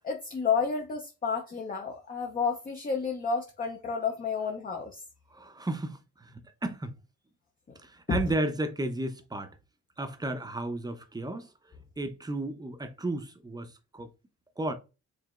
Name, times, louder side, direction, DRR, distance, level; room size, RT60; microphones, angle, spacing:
voice 1, 0.0-5.0 8.1-8.2, left 5 dB, 30° left, 0.7 m, -30 dB
voice 2, 5.3-6.9 7.8-9.5 10.0-11.5 12.0-14.1 14.6-14.7, right 2 dB, 15° right, 0.7 m, -33 dB
4.8 x 3.1 x 2.4 m
cardioid pair, 90°, 30 cm